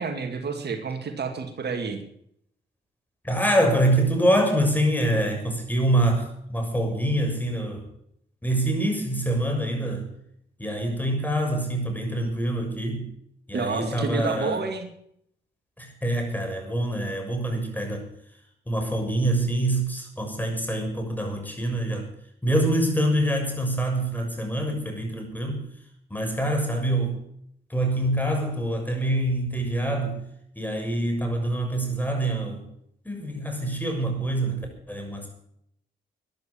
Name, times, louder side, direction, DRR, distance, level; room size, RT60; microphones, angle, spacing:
voice 1, 0.0-2.0 13.5-14.9, right 5 dB, 65° right, 6 dB, 2.3 m, -29 dB
voice 2, 3.2-7.8 8.4-10.1 10.6-13.1 13.5-14.6 15.8-18.0 18.7-22.1 22.4-25.6 26.1-27.2 27.7-30.2 30.6-32.6 33.0-34.6 34.9-35.3, right 1 dB, 10° left, 3 dB, 6.6 m, -25 dB
13.0 x 10.5 x 8.8 m, 0.71 s
supercardioid pair, 55°, 19 cm